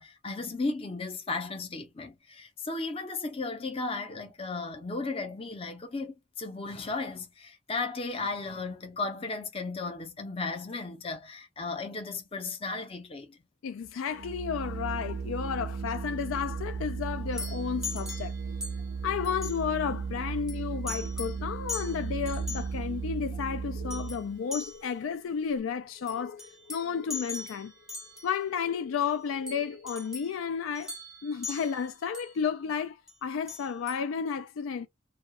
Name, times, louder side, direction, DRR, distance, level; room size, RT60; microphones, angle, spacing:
voice 1, 0.0-13.4, left 3 dB, 30° left, 0.6 m, -35 dB
voice 2, 13.6-18.3 19.0-26.4 26.7-27.7 28.2-30.9 31.2-34.9, left 6 dB, 80° left, 0.3 m, -32 dB
Organ, 14.1-24.4, right 5 dB, 60° right, 0.4 m, -35 dB
sound 1, 17.3-19.0 19.2-19.7 20.5-20.6 20.9-21.4 21.7-22.7 23.9-24.2 24.5-25.0 26.1-28.4 29.5-30.4 30.8-32.3 33.1-33.2 33.5-34.0, left 4 dB, 5° right, 0.7 m, -40 dB
sound 2, 21.4-21.6 22.0-22.1 22.2-22.4 22.9-30.7, left 5 dB, 60° left, 0.7 m, -52 dB
2.3 x 2.3 x 2.8 m
head